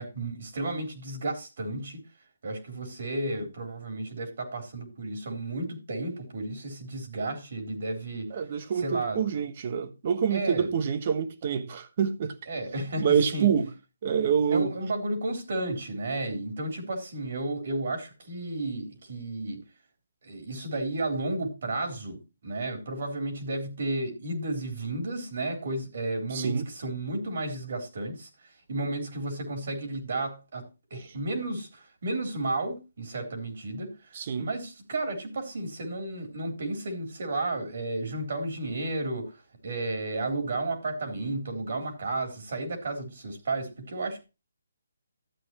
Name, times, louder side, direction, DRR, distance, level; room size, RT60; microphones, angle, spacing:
voice 1, 0.0-2.0 2.4-8.4 8.8-9.3 10.3-10.7 12.5-13.5 14.5-19.6 20.2-39.4 39.6-44.3, right 2 dB, 60° right, 3.7 m, -33 dB
voice 2, 8.3-12.3 13.0-13.7 14.0-14.7 26.3-26.7 34.1-34.5, right 7 dB, 40° right, 1.3 m, -26 dB
12.5 x 8.4 x 3.0 m
hypercardioid pair, 155°, 0 cm